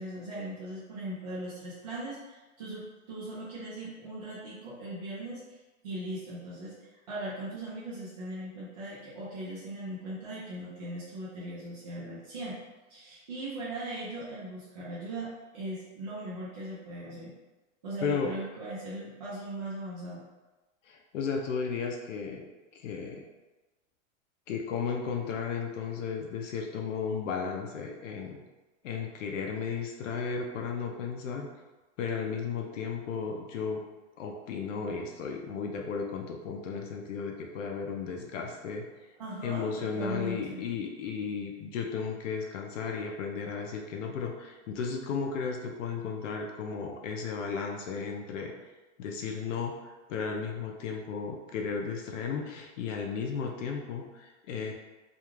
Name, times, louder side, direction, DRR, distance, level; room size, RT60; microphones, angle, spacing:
voice 1, 0.0-5.6 5.8-12.6 12.9-17.3 17.8-20.2 39.2-40.6, right 1 dB, 35° right, -9 dB, 0.4 m, -39 dB
voice 2, 18.0-18.3 20.8-22.5 22.7-23.2 24.5-28.4 28.8-31.5 32.0-33.8 34.2-38.8 39.4-48.5 49.0-49.7 50.1-54.7, left 5 dB, 75° left, 1 dB, 0.5 m, -34 dB
2.4 x 2.2 x 3.0 m, 1.2 s
supercardioid pair, 180°, 38 cm